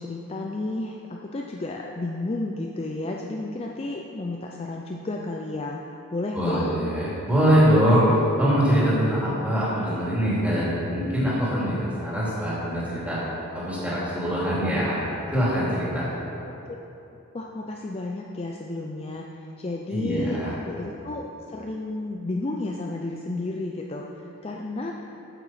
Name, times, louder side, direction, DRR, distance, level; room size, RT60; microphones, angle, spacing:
voice 1, 0.0-5.8 6.1-6.7 16.4-16.5 17.3-25.2, left 2 dB, 25° left, 0 dB, 0.4 m, -32 dB
voice 2, 6.3-8.0 8.4-13.2 13.5-15.0 15.3-16.0 19.9-20.5, equal, 5° right, -9 dB, 2.6 m, -23 dB
8.9 x 7.4 x 5.7 m, 2.8 s
head